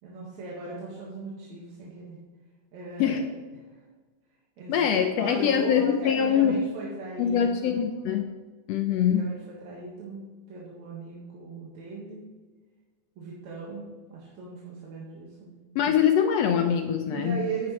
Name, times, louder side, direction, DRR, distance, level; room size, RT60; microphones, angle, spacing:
voice 1, 0.0-2.2 2.7-3.2 4.6-8.1 9.0-9.3 9.6-12.3 13.2-15.5 17.1-17.7, right 4 dB, 70° right, -5 dB, 2.8 m, -38 dB
voice 2, 4.7-6.6 7.2-8.3 8.7-9.3 15.7-17.4, left 8 dB, 75° left, 6 dB, 1.5 m, -23 dB
10.5 x 9.6 x 3.1 m, 1.3 s
omnidirectional pair, 3.4 m